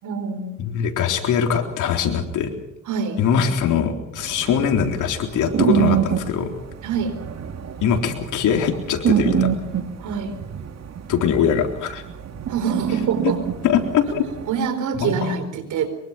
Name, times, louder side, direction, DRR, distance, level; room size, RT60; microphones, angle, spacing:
voice 1, 0.0-0.6 2.9-3.2 6.8-7.2 10.0-10.4 12.5-13.4 14.5-15.9, right 6 dB, 75° right, 10 dB, 4.4 m, -25 dB
voice 2, 0.6-2.5 3.2-6.5 7.8-9.5 11.1-12.0 13.2-13.3 13.6-14.3 15.0-15.3, left 7 dB, 85° left, 4 dB, 3.9 m, -22 dB
Cute snoring cat, 4.2-14.6, right 9 dB, 60° right, 2.3 m, -26 dB
24.5 x 23.0 x 5.9 m, 0.79 s
cardioid pair, 90°, 30 cm